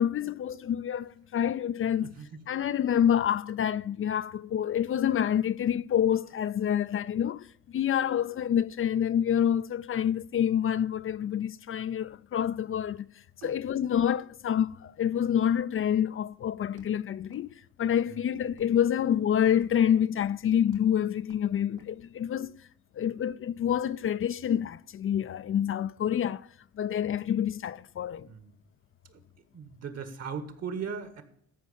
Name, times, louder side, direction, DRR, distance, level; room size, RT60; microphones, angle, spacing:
voice 1, 0.0-2.1 2.5-13.1 13.4-22.6 23.0-26.5 26.8-28.3, left 9 dB, 45° left, 0.4 m, -27 dB
voice 2, 2.0-2.3 13.4-13.6 18.1-18.2 28.3-28.5 29.1-29.2 29.5-31.2, right 6 dB, 55° right, 1.7 m, -38 dB
Walk footsteps, 16.7-17.0 17.3-17.6 17.8-18.2 18.4-19.3 19.6-19.8 20.1-20.4 20.7-20.9 21.2-21.4 21.8-21.9, right 5 dB, 80° right, 2.2 m, -56 dB
14.0 x 5.4 x 6.8 m
cardioid pair, 90°, 30 cm